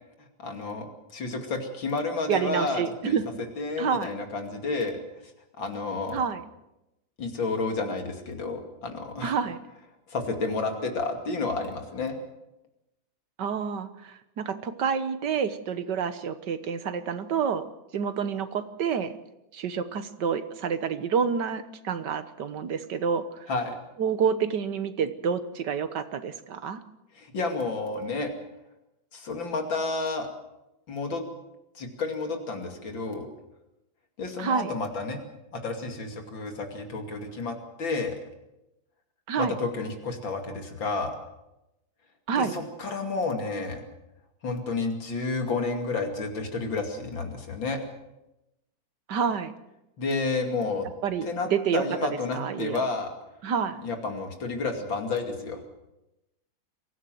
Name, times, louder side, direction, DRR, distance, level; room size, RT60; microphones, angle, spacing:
voice 1, 0.4-3.2 3.6-5.0 5.6-6.2 7.2-9.3 10.1-12.2 23.5-23.7 27.1-28.3 29.1-30.3 30.9-31.2 31.7-33.3 34.2-35.2 35.5-38.2 39.4-41.1 42.3-43.8 44.4-47.8 50.0-50.9 51.3-53.1 53.8-55.6, left 3 dB, 70° left, 4 dB, 3.2 m, -30 dB
voice 2, 2.3-3.2 3.8-4.1 6.1-6.4 9.2-9.6 13.4-17.6 17.9-19.1 19.5-23.5 24.0-26.8 34.4-34.7 39.3-39.6 42.3-42.5 49.1-49.5 51.0-51.8 52.3-52.8 53.4-53.8, right 6 dB, 60° right, 11 dB, 1.7 m, -28 dB
23.5 x 16.0 x 7.7 m, 0.92 s
omnidirectional pair, 2.2 m